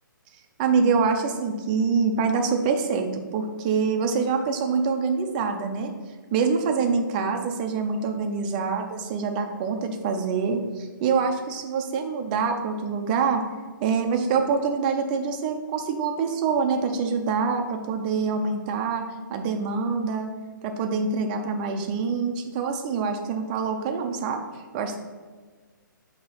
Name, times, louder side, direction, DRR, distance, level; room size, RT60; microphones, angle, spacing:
voice 1, 0.6-5.9 6.3-13.4 13.8-20.3 20.6-24.4 24.7-25.0, right 5 dB, 25° right, 5 dB, 0.5 m, -25 dB
5.9 x 2.9 x 5.5 m, 1.4 s
hypercardioid pair, 155°, 11 cm